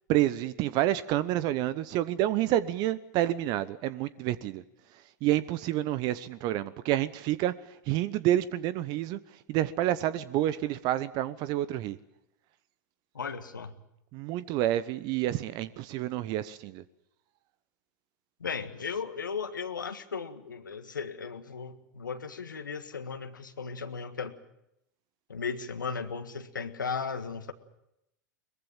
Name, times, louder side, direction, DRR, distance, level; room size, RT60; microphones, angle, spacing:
voice 1, 0.1-4.6 5.2-7.5 7.9-9.2 9.5-12.0 14.1-16.8, right 13 dB, 40° right, 17 dB, 0.9 m, -28 dB
voice 2, 13.2-13.7 18.4-24.4 25.3-27.5, left 5 dB, 80° left, 8 dB, 1.7 m, -36 dB
22.5 x 21.5 x 7.4 m, 0.84 s
figure-of-eight pair, 95°, 10 cm